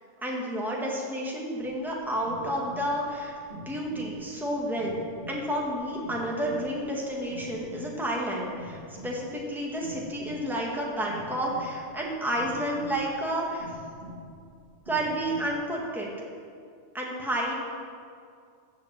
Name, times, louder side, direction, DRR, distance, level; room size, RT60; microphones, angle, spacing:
voice 1, 0.2-5.0 5.3-13.7 14.9-16.1 16.9-17.5, right 1 dB, ahead, -3 dB, 1.7 m, -30 dB
sound 1, 1.6-15.6, left 1 dB, 65° right, 1.9 m, -45 dB
15.0 x 5.1 x 7.4 m, 2.3 s
omnidirectional pair, 1.2 m